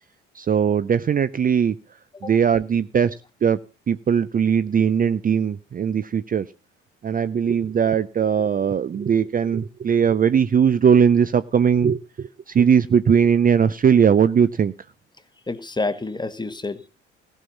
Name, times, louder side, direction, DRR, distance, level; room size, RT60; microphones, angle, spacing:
voice 1, 0.4-1.8 2.2-3.1 3.4-3.6 3.9-6.4 7.0-14.7, right 7 dB, 30° right, 0.6 m, -19 dB
voice 2, 15.5-16.9, left 3 dB, 15° left, 1.3 m, -28 dB
15.5 x 5.6 x 7.1 m
hypercardioid pair, 60°, 29 cm